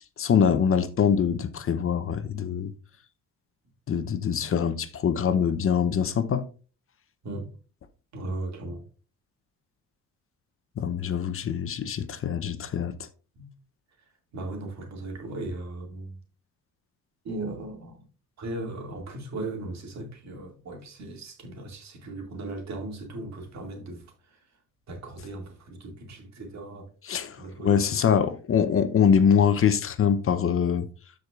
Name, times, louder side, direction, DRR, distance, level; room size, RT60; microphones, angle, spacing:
voice 1, 0.0-2.7 3.9-6.4 10.8-13.0 27.1-27.4 27.6-30.9, left 7 dB, 45° left, 0.7 m, -24 dB
voice 2, 8.1-8.8 13.4-13.5 14.3-16.2 17.2-18.0 18.4-24.5 24.9-26.9 27.3-28.2, right 2 dB, 65° right, 2.3 m, -37 dB
13.0 x 4.8 x 2.4 m
cardioid pair, 90°, 30 cm